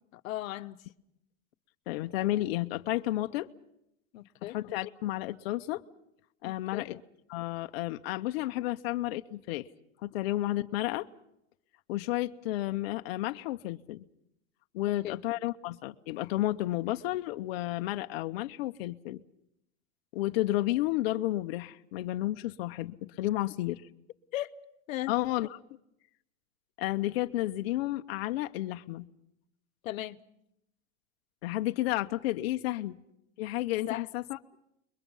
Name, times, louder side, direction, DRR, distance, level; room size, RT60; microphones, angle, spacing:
voice 1, 0.1-0.8 4.1-4.6 6.4-6.9 15.0-15.2 24.3-24.6 24.9-25.1 29.8-30.2 33.9-34.1, left 15 dB, 80° left, 1.0 m, -37 dB
voice 2, 1.9-3.5 4.4-5.8 6.4-7.0 7.3-9.7 10.0-11.1 11.9-14.0 14.7-19.2 20.1-23.8 25.1-25.6 26.8-29.1 31.4-33.0 33.4-34.4, left 16 dB, 50° left, 0.8 m, -32 dB
29.5 x 22.0 x 5.5 m
supercardioid pair, 170°, 40 cm